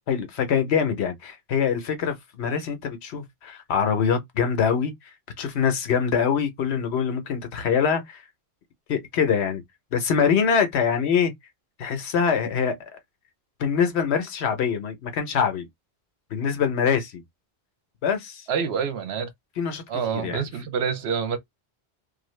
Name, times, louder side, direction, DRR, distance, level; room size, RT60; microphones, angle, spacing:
voice 1, 0.1-5.1 5.4-8.2 8.9-9.6 9.9-11.3 11.8-12.8 13.6-15.7 16.3-17.2 18.0-18.5 19.6-19.8 20.1-20.4, left 7 dB, 80° left, 1.0 m, -24 dB
voice 2, 18.5-19.3 19.9-21.4, right 6 dB, 75° right, 0.9 m, -27 dB
2.6 x 2.3 x 3.1 m
omnidirectional pair, 1.1 m